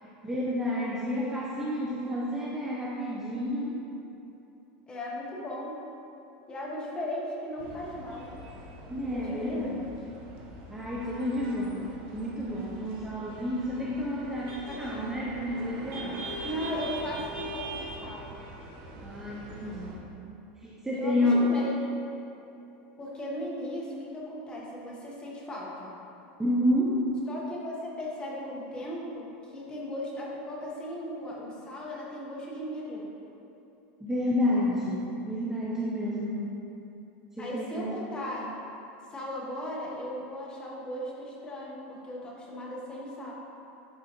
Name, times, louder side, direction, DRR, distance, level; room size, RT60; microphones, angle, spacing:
voice 1, 0.0-3.8 8.9-9.8 10.7-16.3 19.0-20.0 20.6-21.5 26.4-26.9 34.0-36.5 37.3-37.9, left 1 dB, 10° right, -6 dB, 0.6 m, -30 dB
voice 2, 4.9-5.8 6.5-8.3 9.1-9.7 14.6-14.8 16.4-18.3 20.9-21.8 23.0-25.9 27.3-33.1 37.4-38.5 39.1-43.3, left 1 dB, 15° left, -4 dB, 1.1 m, -37 dB
sound 1, 7.6-20.0, right 2 dB, 50° right, 1.0 m, -42 dB
10.0 x 3.9 x 3.0 m, 2.9 s
supercardioid pair, 150°, 5 cm